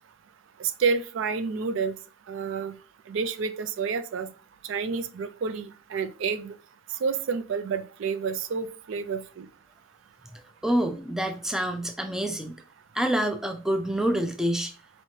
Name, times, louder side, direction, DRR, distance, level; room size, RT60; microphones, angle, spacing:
voice 1, 0.6-2.0 2.3-2.8 3.1-4.3 4.6-6.5 7.0-9.5, right 5 dB, 65° right, 12 dB, 0.4 m, -29 dB
voice 2, 10.6-12.6 12.9-14.7, right 1 dB, ahead, 5 dB, 0.4 m, -27 dB
4.1 x 3.1 x 2.8 m, 0.35 s
head